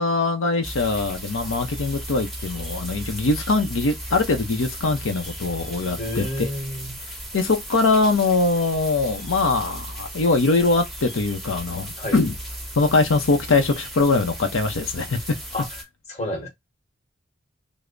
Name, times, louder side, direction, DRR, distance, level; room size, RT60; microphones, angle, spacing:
voice 1, 0.0-6.5 7.3-12.4 12.8-15.2, left 3 dB, 85° left, 0.6 m, -22 dB
sound 1, 0.6-15.8, right 1 dB, ahead, 0.7 m, -36 dB
voice 2, 6.0-7.0 12.0-12.2 15.5-15.7 16.1-16.5, left 1 dB, 35° left, 1.0 m, -30 dB
3.2 x 2.0 x 3.7 m
head